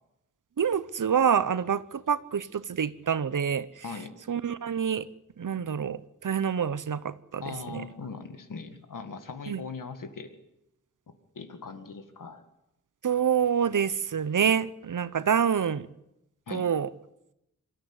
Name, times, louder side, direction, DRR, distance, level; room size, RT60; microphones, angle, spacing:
voice 1, 0.6-3.8 4.3-5.1 5.4-7.8 9.5-9.6 13.0-15.9 16.5-16.9, right 7 dB, 75° right, 0.9 m, -27 dB
voice 2, 3.8-4.1 7.4-10.3 11.4-12.4 16.5-16.6, left 4 dB, 80° left, 2.0 m, -40 dB
23.5 x 13.5 x 9.8 m
wide cardioid pair, 70°, 31 cm